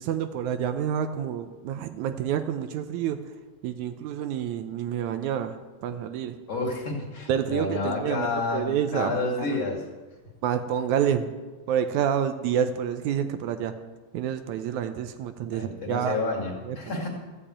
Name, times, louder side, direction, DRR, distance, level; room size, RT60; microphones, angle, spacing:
voice 1, 0.0-3.3 3.6-6.4 7.3-9.2 9.5-9.7 10.4-11.3 11.7-13.7 14.1-16.2 16.7-16.8, right 9 dB, 80° right, 9 dB, 2.0 m, -28 dB
voice 2, 6.5-8.7 8.9-9.8 15.5-17.1, left 3 dB, 40° left, -2 dB, 2.9 m, -29 dB
14.0 x 6.8 x 8.6 m, 1.3 s
omnidirectional pair, 3.5 m